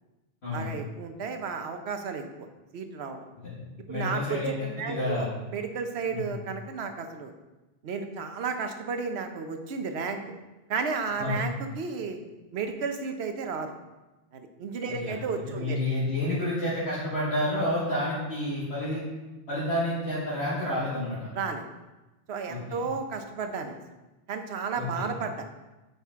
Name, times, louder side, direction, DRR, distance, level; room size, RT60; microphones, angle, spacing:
voice 1, 0.5-2.2 2.7-3.2 3.9-4.4 4.8-7.3 7.8-10.2 10.7-12.2 12.5-13.7 14.3-15.8 21.3-21.6 22.3-23.8 24.3-25.4, right 5 dB, 65° right, 6 dB, 1.0 m, -33 dB
voice 2, 3.9-5.3 6.1-6.3 11.2-11.4 14.9-15.1 15.5-19.0 19.5-21.2 22.5-22.8 24.7-25.1, left 1 dB, 65° left, -9 dB, 2.1 m, -30 dB
8.6 x 5.3 x 3.6 m, 1.1 s
omnidirectional pair, 1.2 m